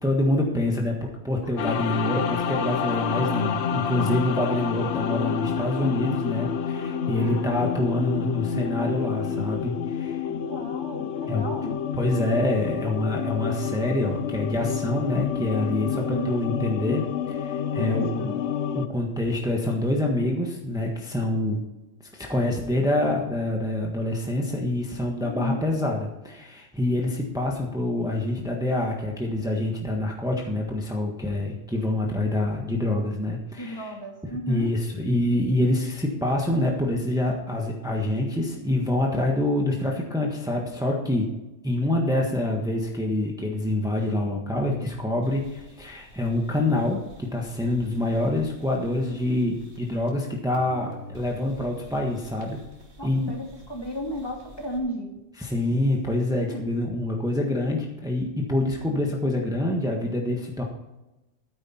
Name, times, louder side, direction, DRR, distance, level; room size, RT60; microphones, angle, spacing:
voice 1, 0.0-10.2 11.3-11.5 12.0-18.3 18.7-21.6 22.1-33.9 34.5-41.3 41.6-52.6 53.0-53.4 55.4-60.6, left 1 dB, 5° right, -1 dB, 1.4 m, -26 dB
sound 1, 1.6-18.9, left 8 dB, 75° left, 1.0 m, -29 dB
voice 2, 2.9-3.3 7.2-8.9 10.2-11.8 15.9-16.4 17.7-18.4 25.2-25.6 33.6-34.7 53.0-55.1 56.5-56.7, equal, 20° left, 1 dB, 2.1 m, -35 dB
sound 2, 45.2-50.3 50.5-54.8, equal, 75° right, 2.8 m, -48 dB
12.5 x 9.8 x 4.4 m, 1.0 s
omnidirectional pair, 1.2 m